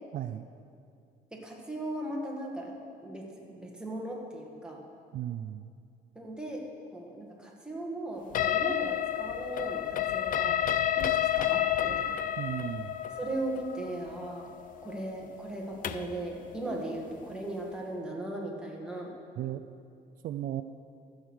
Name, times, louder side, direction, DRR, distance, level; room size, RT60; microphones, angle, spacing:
voice 1, 0.1-0.5 5.1-5.7 12.4-13.0 19.4-19.6 20.2-20.6, right 12 dB, 55° right, 9 dB, 0.4 m, -35 dB
voice 2, 1.3-2.7 3.0-4.8 6.2-6.7 6.9-12.1 13.2-14.5 14.8-19.1, right 1 dB, 5° right, -2 dB, 2.0 m, -38 dB
sound 1, 8.3-16.2, left 11 dB, 55° left, 0.5 m, -30 dB
14.0 x 6.4 x 6.5 m, 2.4 s
cardioid pair, 110°, 17 cm